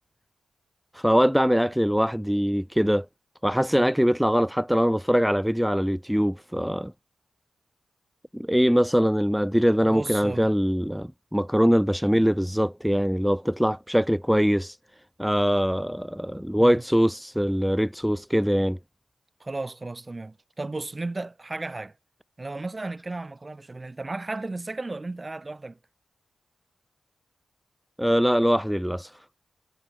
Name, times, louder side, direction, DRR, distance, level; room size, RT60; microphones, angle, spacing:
voice 1, 0.9-3.1 3.4-6.9 8.3-14.8 15.2-18.8 28.0-29.2, equal, ahead, 1.8 m, -22 dB
voice 2, 3.6-3.9 9.8-10.5 16.6-16.8 19.4-21.9 22.4-25.8, right 2 dB, 30° right, 8.0 m, -34 dB
cardioid pair, 65°, 0 cm